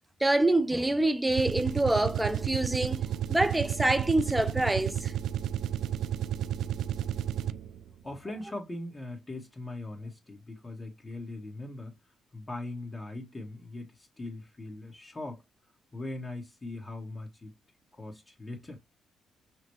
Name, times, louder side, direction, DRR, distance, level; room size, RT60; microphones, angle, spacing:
voice 1, 0.2-5.1, right 1 dB, 10° right, 0.5 m, -26 dB
sound 1, 1.3-7.8, right 10 dB, 75° right, 0.3 m, -32 dB
voice 2, 8.0-12.0 12.3-15.4 15.9-17.5 17.9-18.8, left 2 dB, 25° left, 1.2 m, -40 dB
5.7 x 2.1 x 3.0 m
cardioid pair, 90°, 0 cm